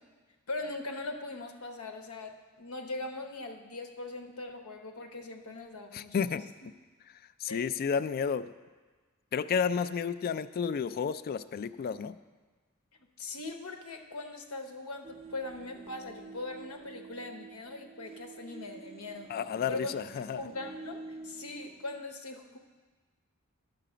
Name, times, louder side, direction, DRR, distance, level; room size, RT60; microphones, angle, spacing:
voice 1, 0.5-6.7 7.5-7.7 13.2-19.3 19.7-20.0 20.4-22.6, left 2 dB, 90° left, 5 dB, 0.9 m, -40 dB
voice 2, 5.9-6.5 7.4-8.5 9.3-12.1 19.3-20.4, left 6 dB, 45° left, 13 dB, 0.3 m, -31 dB
sound 1, 15.0-22.0, right 3 dB, 25° right, 0.4 m, -48 dB
11.0 x 6.7 x 5.0 m, 1.3 s
head